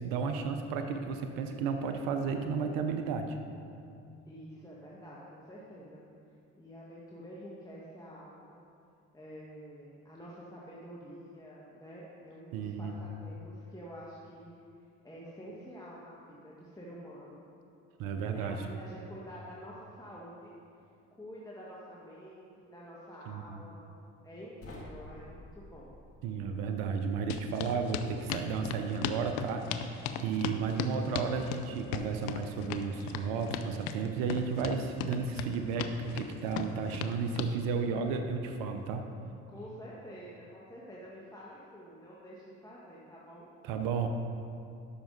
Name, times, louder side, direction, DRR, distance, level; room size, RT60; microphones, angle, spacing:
voice 1, 0.0-3.4 12.5-13.0 18.0-18.7 23.3-23.6 26.2-39.1 43.6-44.1, right 5 dB, 75° right, 6 dB, 0.7 m, -33 dB
voice 2, 4.3-6.0 6.6-8.6 9.1-14.6 15.0-17.4 18.2-20.5 21.2-23.9 24.2-25.9 39.5-43.5, equal, 10° left, -6 dB, 1.6 m, -48 dB
sound 1, 24.6-27.7, left 1 dB, 40° left, 1.9 m, -51 dB
sound 2, 27.3-37.5, left 9 dB, 80° left, 0.6 m, -37 dB
12.5 x 5.9 x 3.9 m, 2.5 s
hypercardioid pair, 60°, 34 cm